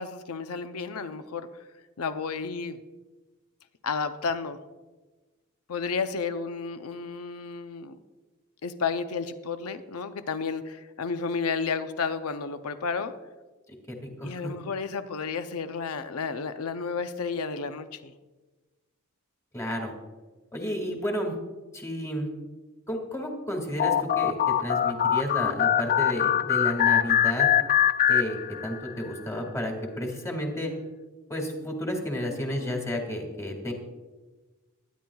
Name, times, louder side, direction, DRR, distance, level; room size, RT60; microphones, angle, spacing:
voice 1, 0.0-1.5 2.0-2.8 3.8-4.6 5.7-8.0 8.6-13.1 14.2-18.1, left 5 dB, 85° left, 10 dB, 0.6 m, -32 dB
voice 2, 14.0-14.5 19.5-19.9 20.5-21.3 21.7-22.3 22.9-27.5 28.1-30.7 31.3-33.7, equal, 15° left, 2 dB, 2.0 m, -32 dB
sound 1, 23.8-28.9, left 10 dB, 40° left, 0.3 m, -23 dB
23.0 x 10.5 x 2.3 m, 1.2 s
head